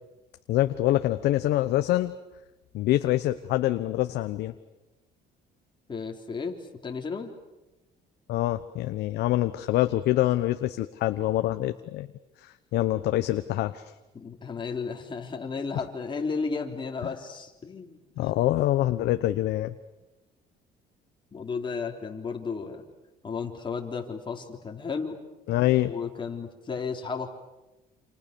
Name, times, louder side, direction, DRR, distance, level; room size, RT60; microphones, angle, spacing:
voice 1, 0.5-2.1 2.7-4.5 8.3-12.1 12.4-13.8 18.2-19.7 25.5-25.9, left 15 dB, 80° left, 9 dB, 1.0 m, -25 dB
voice 2, 5.9-7.3 14.1-18.0 21.3-22.8 23.2-25.2 25.9-27.3, left 5 dB, 30° left, 2 dB, 4.0 m, -33 dB
29.0 x 28.0 x 7.0 m, 1.0 s
cardioid pair, 110°, 17 cm